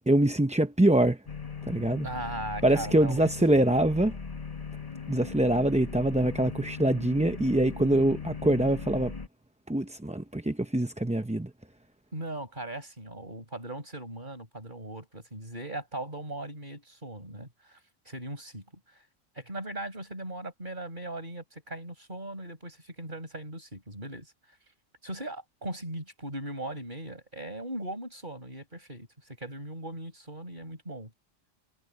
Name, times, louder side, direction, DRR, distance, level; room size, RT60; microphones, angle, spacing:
voice 1, 0.1-1.2 1.7-2.1 2.6-4.2 5.1-9.1 9.7-11.5, right 1 dB, 10° right, 0.5 m, -24 dB
sound 1, 1.3-9.3, left 5 dB, 30° left, 1.8 m, -39 dB
voice 2, 2.0-3.3 12.1-17.8 18.0-19.0 19.3-24.3 25.0-31.1, right 1 dB, 45° right, 6.2 m, -39 dB
omnidirectional pair, 1.2 m